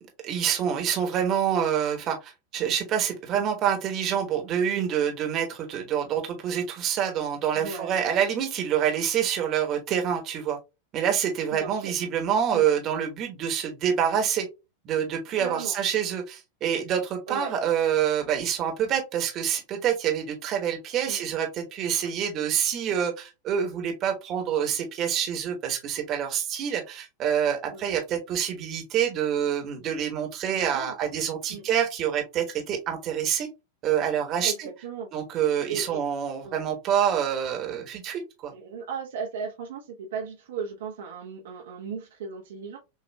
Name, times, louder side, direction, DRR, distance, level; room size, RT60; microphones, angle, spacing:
voice 1, 0.2-10.6 10.9-14.5 14.8-33.5 33.8-34.7 35.1-38.5, right 9 dB, 35° right, 1.1 m, -27 dB
voice 2, 7.5-8.1 11.6-11.9 12.5-12.6 15.4-15.8 17.3-17.5 21.1-21.2 22.0-22.1 27.7-27.8 30.5-30.9 31.5-31.7 34.4-35.1 35.7-36.0 36.4-36.6 38.5-42.8, right 6 dB, 60° right, 0.7 m, -36 dB
6.2 x 2.4 x 2.2 m
figure-of-eight pair, 90°, 0 cm